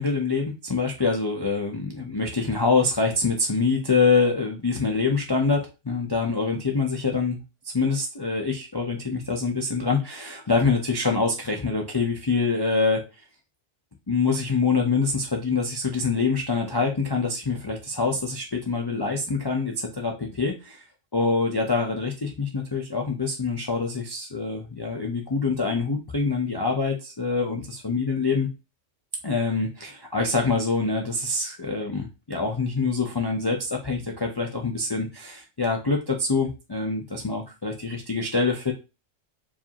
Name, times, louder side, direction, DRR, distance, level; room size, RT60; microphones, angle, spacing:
voice 1, 0.0-7.4 7.7-13.1 14.1-20.8 21.1-28.5 29.2-38.7, left 4 dB, 35° left, 1 dB, 0.4 m, -25 dB
4.7 x 2.6 x 2.8 m, 0.28 s
omnidirectional pair, 1.3 m